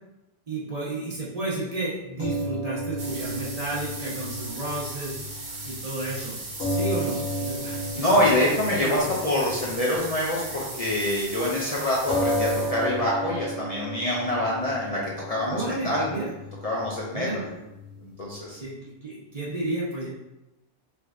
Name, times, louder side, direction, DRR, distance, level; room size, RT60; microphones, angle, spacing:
voice 1, 0.5-5.2 5.6-6.4 6.7-7.8 8.8-9.0 15.5-16.3 17.1-17.4 18.6-20.1, right 2 dB, 40° right, -6 dB, 0.8 m, -32 dB
sound 1, 2.2-10.7 11.0-11.2 12.1-18.6, equal, 90° left, 1.4 m, -33 dB
sound 2, 3.0-13.0, right 2 dB, 60° right, 1.1 m, -38 dB
voice 2, 7.9-16.1 16.6-17.5 18.0-18.6, left 1 dB, 45° left, -5 dB, 0.6 m, -25 dB
3.3 x 3.2 x 2.4 m, 0.93 s
omnidirectional pair, 1.1 m